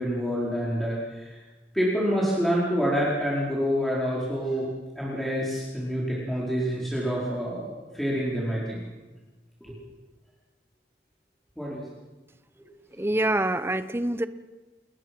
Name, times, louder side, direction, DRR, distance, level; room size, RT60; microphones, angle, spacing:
voice 1, 0.0-1.4 1.7-4.7 4.9-8.8 9.6-9.7 11.6-11.8, equal, ahead, -6 dB, 4.7 m, -27 dB
voice 2, 13.0-14.3, right 1 dB, 15° right, 12 dB, 1.0 m, -25 dB
29.5 x 20.5 x 6.2 m, 1.2 s
head